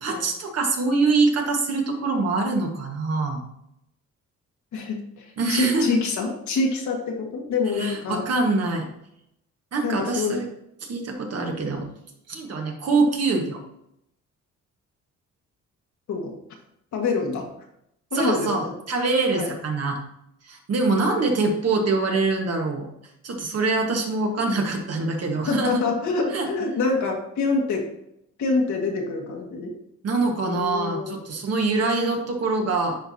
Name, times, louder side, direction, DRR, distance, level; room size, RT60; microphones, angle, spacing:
voice 1, 0.0-3.4 5.4-6.0 7.8-8.9 9.7-10.5 10.8-11.9 12.3-13.6 18.1-20.0 20.5-22.9 23.2-25.8 26.3-26.5 30.0-33.0, right 3 dB, 55° right, 2 dB, 1.6 m, -24 dB
voice 2, 4.7-8.2 9.8-10.3 16.1-16.3 16.9-17.5 18.1-18.7 19.3-19.5 25.5-27.8 28.4-29.7 30.5-31.2, left 4 dB, 70° left, 1 dB, 1.8 m, -26 dB
10.0 x 4.7 x 2.8 m, 0.78 s
cardioid pair, 90°, 30 cm